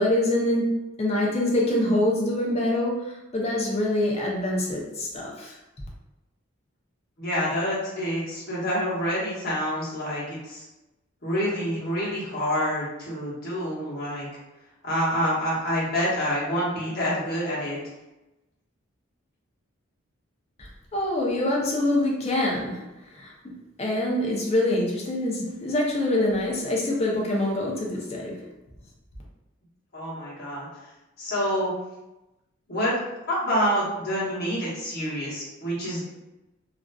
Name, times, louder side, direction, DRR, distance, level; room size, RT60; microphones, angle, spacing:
voice 1, 0.0-5.5 20.9-22.8 23.1-23.3 23.8-28.4, left 1 dB, 30° left, -2 dB, 0.5 m, -25 dB
voice 2, 7.2-10.6 11.2-14.3 14.8-17.8 29.9-30.7 31.2-31.7 32.7-32.9 33.3-36.0, equal, 45° left, -7 dB, 0.9 m, -27 dB
2.4 x 2.3 x 2.2 m, 1.0 s
head